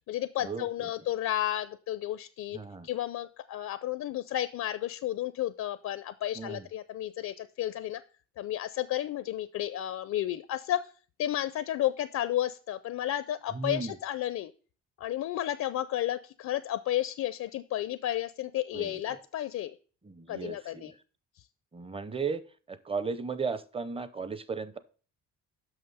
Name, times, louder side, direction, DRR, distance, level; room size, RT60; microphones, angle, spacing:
voice 1, 0.1-2.6 2.8-8.0 8.4-10.8 11.2-14.5 15.0-19.7 20.3-20.9, left 12 dB, 65° left, 14 dB, 0.5 m, -32 dB
voice 2, 2.5-2.9 6.4-6.7 13.5-13.9 18.7-18.9 20.0-20.8 21.7-24.8, right 4 dB, 20° right, 14 dB, 0.6 m, -35 dB
6.2 x 5.7 x 5.4 m, 0.40 s
cardioid pair, 90°, 30 cm